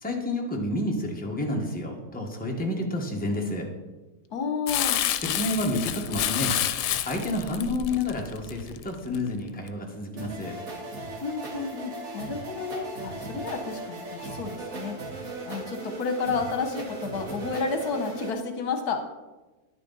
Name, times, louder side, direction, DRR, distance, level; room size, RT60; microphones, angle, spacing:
voice 1, 0.0-3.7 5.2-6.6 7.1-10.6, left 1 dB, 5° left, 0 dB, 1.3 m, -29 dB
voice 2, 4.3-5.0 11.2-19.0, left 4 dB, 70° left, 6 dB, 1.4 m, -31 dB
Crumpling crinkling, 4.7-9.2 9.7-9.8, left 12 dB, 85° left, 1.2 m, -29 dB
sound 1, 10.2-18.3, right 2 dB, 60° right, 2.3 m, -37 dB
10.5 x 9.8 x 4.1 m, 1.2 s
omnidirectional pair, 1.7 m